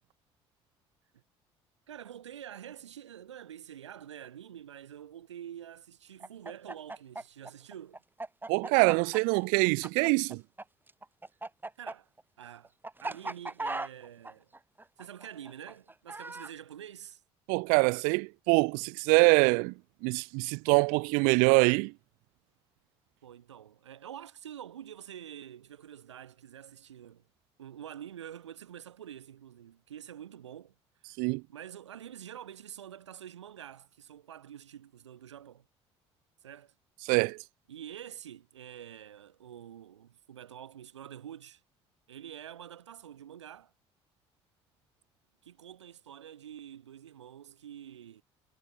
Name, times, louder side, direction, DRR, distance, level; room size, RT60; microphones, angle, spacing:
voice 1, 1.9-8.0 11.8-12.1 12.4-12.7 13.0-14.5 15.0-17.2 23.2-27.2 27.6-30.8 31.5-35.7 36.4-36.7 37.7-41.6 42.1-43.7 45.4-48.2, right 10 dB, 85° right, 5.2 m, -47 dB
Chicken rooster, 6.2-10.6 10.9-16.5, right 2 dB, 15° right, 1.6 m, -38 dB
voice 2, 8.5-10.4 17.5-19.7 20.0-21.9 31.2-31.4 37.0-37.4, right 35 dB, 70° right, 0.8 m, -24 dB
hypercardioid pair, 55°, 15 cm